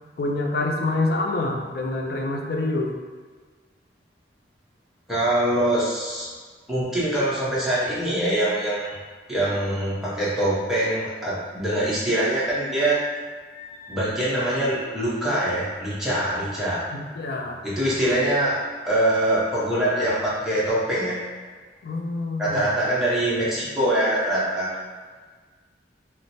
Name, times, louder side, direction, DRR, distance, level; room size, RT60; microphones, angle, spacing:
voice 1, 0.2-2.9 16.9-17.6 21.8-22.8, left 2 dB, 55° left, 1 dB, 0.4 m, -26 dB
voice 2, 5.1-6.3 6.7-9.0 9.3-13.0 13.5-16.8 17.6-18.6 18.9-21.2 22.4-24.7, right 1 dB, ahead, -10 dB, 0.8 m, -24 dB
3.0 x 2.0 x 4.0 m, 1.5 s
head